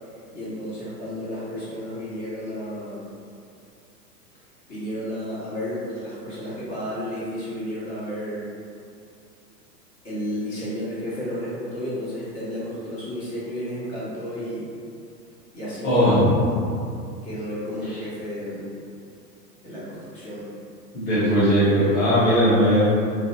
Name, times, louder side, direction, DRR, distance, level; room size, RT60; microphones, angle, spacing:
voice 1, 0.3-3.0 4.7-8.4 10.0-14.6 15.5-16.6 17.2-18.7 19.6-20.5, equal, 35° left, -10 dB, 1.2 m, -32 dB
voice 2, 15.8-16.3 20.9-22.8, equal, 20° left, -14 dB, 0.8 m, -18 dB
2.5 x 2.0 x 2.5 m, 2.4 s
figure-of-eight pair, 100°, 49 cm